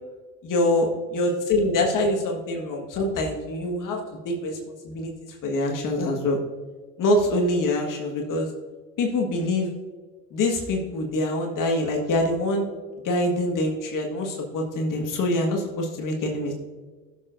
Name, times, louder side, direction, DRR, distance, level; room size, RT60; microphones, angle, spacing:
voice 1, 0.4-4.6 4.8-6.4 7.0-8.5 9.0-9.7 10.3-12.7 13.0-16.5, left 1 dB, 50° left, 1 dB, 1.7 m, -25 dB
15.5 x 7.1 x 2.6 m, 1.4 s
hypercardioid pair, 80°, 39 cm